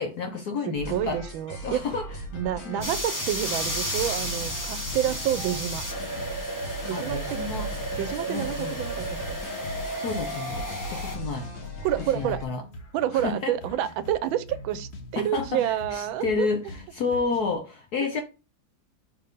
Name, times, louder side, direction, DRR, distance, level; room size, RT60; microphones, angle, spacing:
voice 1, 0.0-1.2 1.6-2.1 2.6-2.9 6.9-7.7 8.3-8.8 10.0-11.5 12.0-12.6 13.1-13.6 15.2-18.2, left 4 dB, 60° left, 1.2 m, -30 dB
voice 2, 0.7-1.8 2.3-5.8 6.9-7.4 8.0-9.2 11.8-12.4 12.9-16.5, right 11 dB, 85° right, 1.4 m, -28 dB
sound 1, 0.8-12.4, right 1 dB, 75° left, 3.0 m, -38 dB
sound 2, 2.8-11.2, equal, 10° left, 1.2 m, -33 dB
sound 3, 3.5-17.5, left 1 dB, 40° left, 1.2 m, -44 dB
5.4 x 4.3 x 5.3 m
omnidirectional pair, 2.1 m